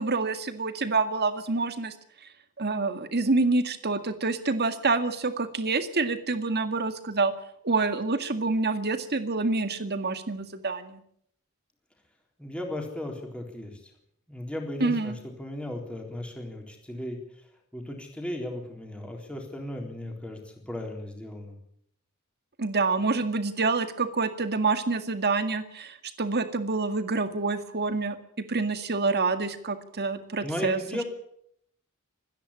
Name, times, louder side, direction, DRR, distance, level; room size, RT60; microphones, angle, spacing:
voice 1, 0.0-1.9 2.6-7.3 7.6-11.0 14.8-15.1 22.6-30.8, right 3 dB, 50° right, 9 dB, 2.0 m, -27 dB
voice 2, 12.4-13.8 14.3-17.5 17.7-21.6 30.4-31.0, left 1 dB, 5° left, 1 dB, 3.8 m, -36 dB
26.5 x 10.5 x 9.9 m, 0.71 s
head